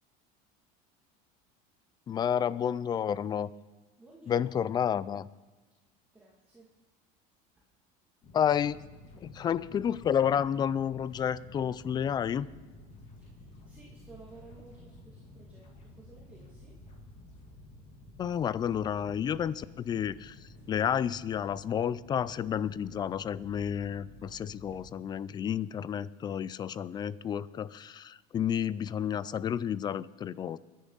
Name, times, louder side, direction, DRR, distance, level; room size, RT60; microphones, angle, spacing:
voice 1, 2.1-3.5 4.3-5.3 8.3-8.8 9.1-12.5 18.2-30.6, left 8 dB, 25° left, 19 dB, 0.4 m, -30 dB
voice 2, 4.0-4.4 6.1-6.7 13.3-16.8, right 3 dB, 10° right, -6 dB, 2.2 m, -55 dB
sound 1, 8.2-25.0, left 1 dB, 40° left, 2.8 m, -52 dB
27.0 x 10.0 x 4.0 m, 1.3 s
supercardioid pair, 140°, 18 cm